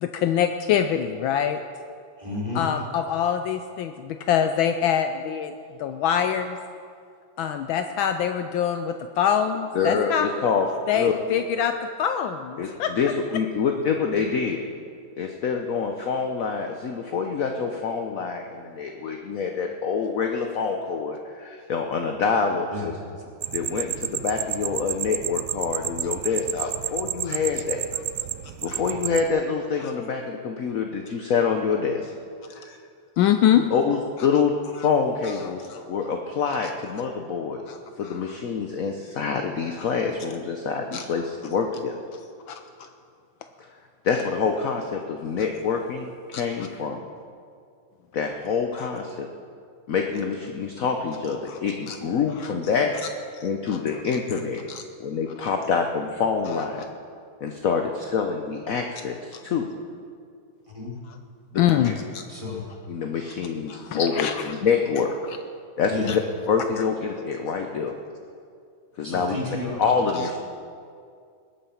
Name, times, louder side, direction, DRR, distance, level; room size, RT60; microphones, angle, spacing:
voice 1, 0.0-1.6 2.5-5.5 5.8-6.6 7.4-10.3 10.9-12.9 27.3-27.4 33.2-33.6 35.2-35.3 35.7-35.8 37.7-37.8 38.0-38.3 40.9-41.0 42.5-42.6 46.3-46.4 48.8-48.9 51.5-51.6 51.9-52.0 52.4-52.5 53.7-53.8 54.7-54.8 55.4-55.5 61.6-62.2 63.7-64.5 66.1-66.2, left 9 dB, 75° left, 8 dB, 1.3 m, -24 dB
voice 2, 2.2-2.7 22.7-23.0 60.7-60.9 62.3-62.6 65.9-66.2 69.0-69.8, left 2 dB, 15° right, -3 dB, 2.5 m, -31 dB
voice 3, 9.7-10.7 10.9-11.2 12.6-14.7 15.2-22.9 23.5-27.8 28.6-32.1 32.5-32.8 33.6-37.6 38.0-42.0 43.6-43.7 44.0-47.0 48.1-49.3 49.9-54.6 55.0-56.8 57.4-59.7 61.5-61.9 62.9-65.1 65.8-66.2 66.5-67.9 69.0-69.4 69.8-70.4, left 5 dB, 60° left, 4 dB, 0.9 m, -26 dB
sound 1, 23.4-29.3, right 13 dB, 80° right, 0.9 m, -30 dB
20.0 x 8.7 x 5.8 m, 2.3 s
omnidirectional pair, 2.4 m